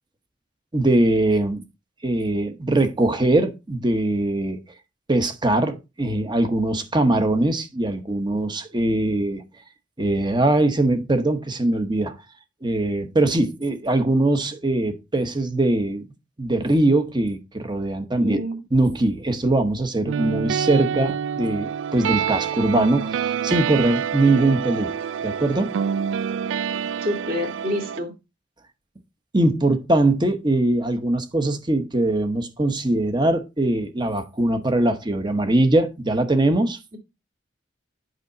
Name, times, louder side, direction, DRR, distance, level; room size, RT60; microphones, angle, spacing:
voice 1, 0.7-1.6 2.0-4.6 5.1-9.4 10.0-12.2 12.6-16.0 16.4-18.4 18.7-24.9 25.2-25.7 29.3-36.8, right 2 dB, 25° right, 0.9 m, -21 dB
voice 2, 18.2-18.6 27.0-28.1, left 1 dB, 50° right, 2.3 m, -27 dB
sound 1, 20.1-28.0, right 7 dB, 75° right, 0.3 m, -27 dB
8.1 x 5.7 x 3.9 m
head